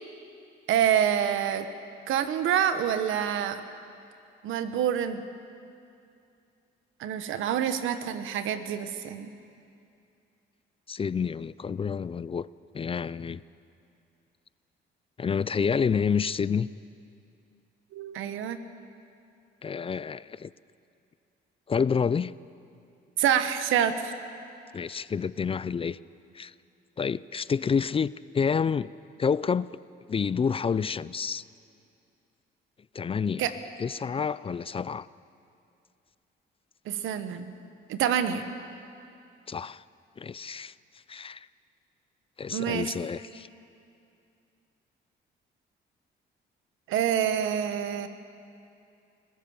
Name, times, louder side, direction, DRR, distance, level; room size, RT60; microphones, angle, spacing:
voice 1, 0.7-1.7 2.1-3.6 4.4-5.2 7.0-9.3 17.9-18.6 23.2-24.1 33.4-33.5 36.9-37.5 37.9-38.5 42.5-42.9 46.9-48.1, right 9 dB, 85° right, 10 dB, 1.2 m, -27 dB
voice 2, 10.9-12.5 12.7-13.4 15.2-16.7 19.6-20.5 21.7-22.3 24.7-26.0 26.3-26.5 27.0-28.9 29.2-29.7 30.1-31.4 32.9-33.5 33.8-35.1 39.5-39.8 40.2-40.7 41.1-41.5 42.4-43.5, left 6 dB, 30° left, 19 dB, 0.4 m, -28 dB
25.0 x 15.0 x 7.2 m, 2.5 s
cardioid pair, 90°, 20 cm